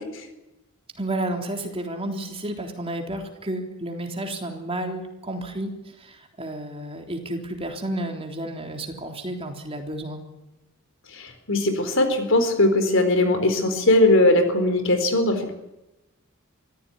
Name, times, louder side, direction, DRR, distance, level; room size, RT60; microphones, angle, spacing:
voice 1, 1.0-5.7 6.0-10.2, right 1 dB, 25° right, 3 dB, 3.7 m, -31 dB
voice 2, 11.5-15.6, left 2 dB, 60° left, 8 dB, 4.2 m, -19 dB
24.0 x 15.5 x 9.9 m, 0.96 s
head